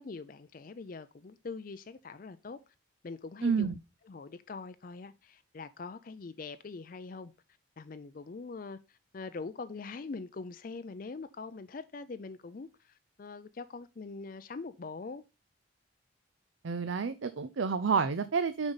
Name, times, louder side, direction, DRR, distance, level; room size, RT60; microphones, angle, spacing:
voice 1, 0.0-2.6 3.0-3.7 4.1-7.3 7.8-15.2, left 4 dB, 45° left, 0.4 m, -43 dB
voice 2, 3.4-3.7 16.6-18.7, right 5 dB, 75° right, 0.5 m, -29 dB
7.0 x 5.2 x 3.9 m
head